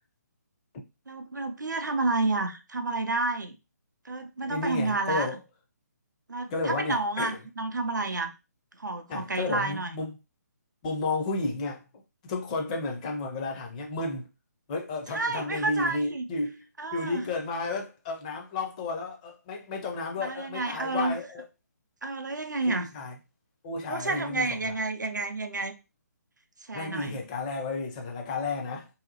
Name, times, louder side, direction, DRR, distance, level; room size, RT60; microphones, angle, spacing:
voice 1, 1.1-3.6 4.0-5.3 6.3-8.3 8.7-9.9 15.1-16.3 16.8-17.2 20.2-21.2 22.0-22.9 23.9-25.7 26.6-27.2, right 3 dB, 85° right, 0.5 m, -30 dB
voice 2, 4.4-5.4 6.5-7.4 9.1-10.2 10.8-11.8 12.2-14.3 14.7-16.6 16.9-21.4 22.7-23.1 23.6-24.7 26.7-28.9, left 3 dB, 25° left, 0.5 m, -32 dB
2.7 x 2.0 x 2.7 m
figure-of-eight pair, 145°, 10 cm